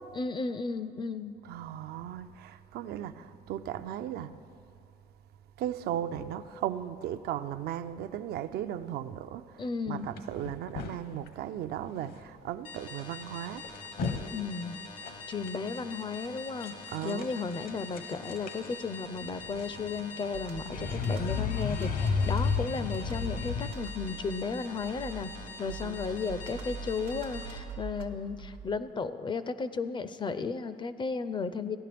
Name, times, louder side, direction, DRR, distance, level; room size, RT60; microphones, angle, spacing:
voice 1, 0.1-1.3 9.6-10.1 14.3-14.8 15.3-16.7 17.0-25.3 25.6-31.8, left 4 dB, 30° left, 0.4 m, -34 dB
voice 2, 1.4-4.4 5.6-13.9 16.9-17.3 25.7-26.0, right 11 dB, 70° right, 0.4 m, -37 dB
sound 1, 10.2-11.3 12.0-12.2 12.5-12.6 13.0-13.1 13.5-14.3 14.6-14.7 15.0-15.5 16.6-17.4 17.7-23.7, left 5 dB, 60° left, 0.9 m, -33 dB
sound 2, 12.6-27.6, left 3 dB, 85° left, 1.4 m, -45 dB
Computer keyboard, 20.3-28.9, right 4 dB, 85° right, 1.0 m, -43 dB
16.0 x 10.5 x 3.4 m
cardioid pair, 110°, 17 cm